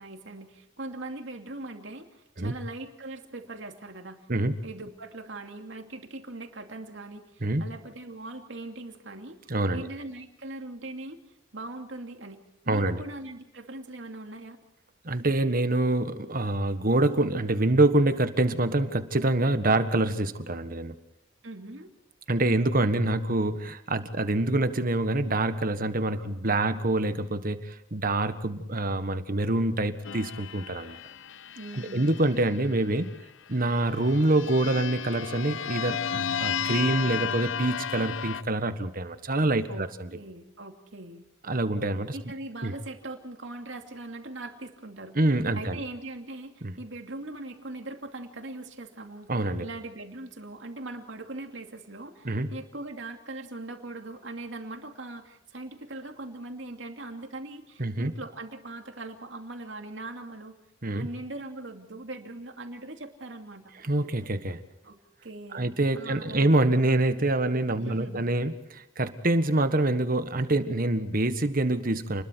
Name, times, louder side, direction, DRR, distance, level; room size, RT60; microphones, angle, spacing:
voice 1, 0.0-11.2 11.5-14.6 21.4-21.9 26.2-26.8 31.5-32.1 39.7-41.2 42.1-45.2 45.5-60.6 60.9-63.7 64.8-66.5 67.8-68.3, right 2 dB, 75° right, 4 dB, 2.7 m, -41 dB
voice 2, 9.5-9.9 12.7-13.0 15.0-20.9 22.3-31.0 31.8-33.1 33.5-40.1 41.5-42.1 42.6-42.7 45.1-45.8 46.6-46.7 49.3-49.6 52.2-52.5 57.8-58.1 60.8-61.1 63.8-64.6 65.5-72.2, right 2 dB, 50° right, 10 dB, 1.5 m, -26 dB
sound 1, 30.0-32.8 33.6-38.4, left 8 dB, 85° left, 0.7 m, -34 dB
29.0 x 21.0 x 4.7 m, 0.84 s
head